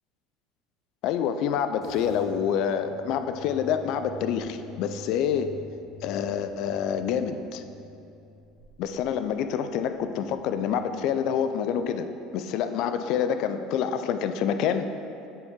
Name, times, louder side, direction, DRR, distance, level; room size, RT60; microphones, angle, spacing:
voice 1, 1.0-5.6 6.0-7.6 8.8-14.9, left 8 dB, 55° left, 9 dB, 0.3 m, -27 dB
sound 1, 1.8-12.4, left 1 dB, 20° right, 1.4 m, -48 dB
7.0 x 4.5 x 3.6 m, 2.7 s
cardioid pair, 155°, 0 cm